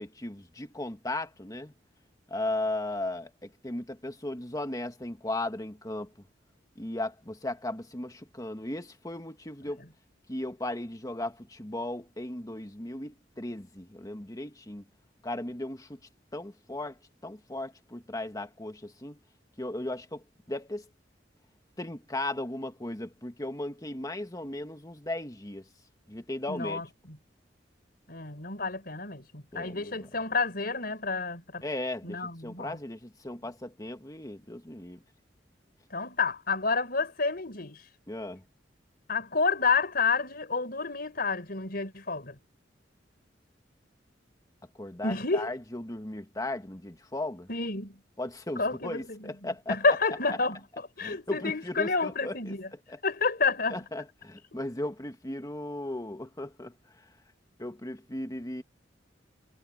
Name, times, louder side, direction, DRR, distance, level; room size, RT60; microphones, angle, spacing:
voice 1, 0.0-1.7 2.3-6.1 6.8-9.8 10.3-14.8 15.2-16.0 16.3-17.0 17.2-19.2 19.6-20.8 21.8-25.6 26.1-26.8 29.5-30.1 31.6-35.0 38.1-38.4 44.8-47.5 48.2-49.8 51.0-52.5 52.9-53.0 53.7-56.7 57.6-58.6, left 1 dB, 20° left, 1.8 m, -36 dB
voice 2, 26.5-27.2 28.1-31.6 32.0-32.8 35.9-37.8 39.1-42.4 45.0-45.5 47.5-48.0 48.6-50.6 51.0-52.7 53.0-53.8, left 4 dB, 55° left, 5.3 m, -29 dB
head